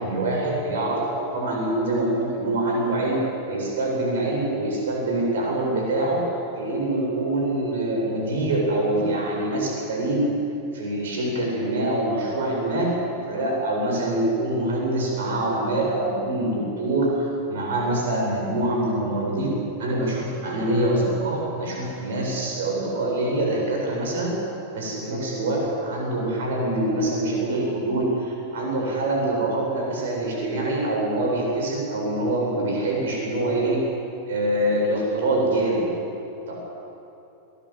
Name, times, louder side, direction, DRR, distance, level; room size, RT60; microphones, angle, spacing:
voice 1, 0.0-3.2 3.5-10.3 10.7-12.9 13.3-19.5 19.8-24.3 24.7-33.8 34.3-35.9 36.5-36.6, right 1 dB, 60° right, -2 dB, 8.0 m, -25 dB
22.5 x 19.5 x 8.4 m, 3.0 s
figure-of-eight pair, 90°, 0 cm